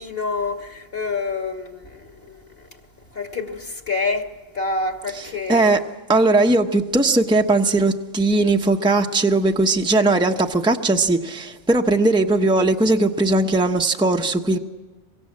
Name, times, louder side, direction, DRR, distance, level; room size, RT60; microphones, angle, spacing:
voice 1, 0.0-2.7 3.1-5.8, left 3 dB, 50° left, 2.3 m, -28 dB
voice 2, 5.5-5.8 6.1-14.6, right 2 dB, 5° right, 1.0 m, -18 dB
27.5 x 23.5 x 7.6 m
omnidirectional pair, 1.3 m